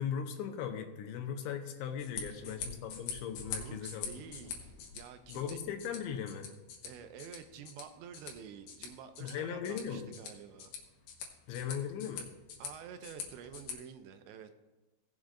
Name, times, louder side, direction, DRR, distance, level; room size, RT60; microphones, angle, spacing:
voice 1, 0.0-4.1 5.3-6.5 9.2-10.1 11.5-12.3, left 8 dB, 85° left, 4 dB, 3.2 m, -38 dB
sound 1, 1.9-13.7, left 6 dB, 70° left, 3.0 m, -45 dB
voice 2, 2.3-2.6 3.6-5.6 6.8-10.8 12.6-14.5, right 8 dB, 85° right, 8 dB, 2.9 m, -49 dB
18.0 x 7.6 x 2.5 m, 1.1 s
omnidirectional pair, 5.1 m